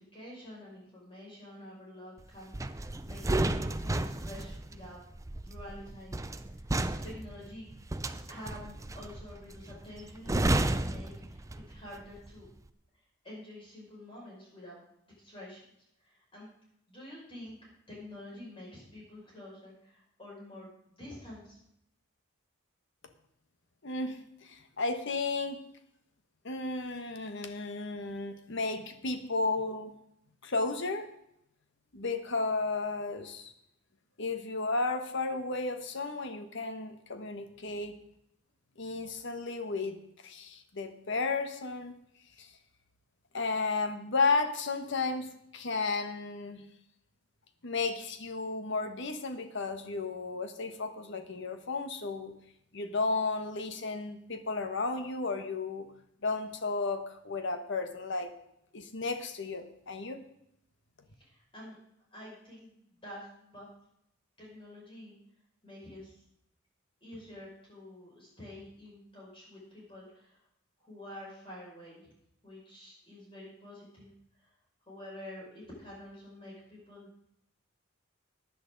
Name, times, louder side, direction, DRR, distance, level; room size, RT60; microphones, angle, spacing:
voice 1, 0.1-5.0 5.4-6.3 6.6-6.7 7.0-7.7 8.3-12.5 13.2-14.8 15.2-15.6 16.0-16.5 16.9-17.6 17.9-21.6 61.2-61.8 62.1-63.7 64.4-65.2 65.6-66.2 67.0-70.4 70.8-72.1 72.4-74.1 74.4-74.5 74.9-77.2, left 1 dB, 25° left, -5 dB, 6.2 m, -48 dB
sound 1, 2.5-11.9 12.2-12.5, right 2 dB, 15° right, 0.5 m, -32 dB
voice 2, 23.8-25.6 26.4-29.9 30.4-31.1 31.9-33.5 34.2-38.0 38.8-41.9 42.4-42.5 43.3-46.6 47.6-52.3 52.7-55.9 56.2-58.3 58.7-60.2, left 3 dB, 65° left, 7 dB, 1.2 m, -33 dB
15.0 x 11.0 x 4.0 m, 0.76 s
head